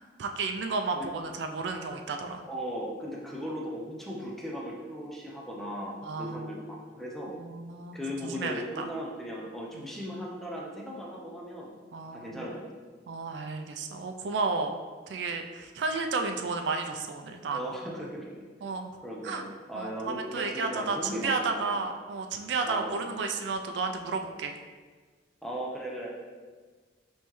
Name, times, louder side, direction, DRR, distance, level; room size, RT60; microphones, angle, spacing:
voice 1, 0.2-2.4 6.0-6.5 7.3-8.0 8.2-8.9 9.7-9.8 11.9-12.5 13.1-14.8 15.1-17.6 18.6-18.9 19.2-19.4 19.7-24.5, right 4 dB, 80° right, 5 dB, 0.4 m, -32 dB
voice 2, 2.5-7.3 7.9-11.7 12.1-12.6 15.9-16.0 17.5-18.4 19.0-21.8 22.7-23.0 25.4-26.1, equal, ahead, -3 dB, 0.6 m, -37 dB
5.3 x 3.1 x 3.1 m, 1.5 s
head